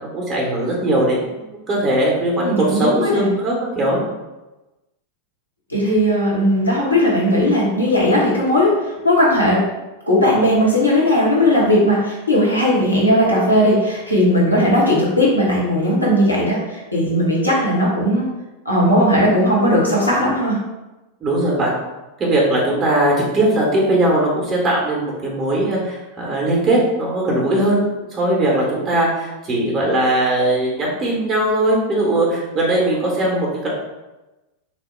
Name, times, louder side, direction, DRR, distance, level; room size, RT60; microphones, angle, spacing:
voice 1, 0.0-4.0 21.2-21.7 22.2-27.8 28.1-33.7, right 1 dB, 25° right, -3 dB, 0.7 m, -19 dB
voice 2, 2.4-3.3 5.7-9.6 10.1-18.3 18.6-20.6, equal, 85° left, -5 dB, 0.8 m, -17 dB
2.8 x 2.0 x 3.1 m, 1.1 s
figure-of-eight pair, 90°, 0 cm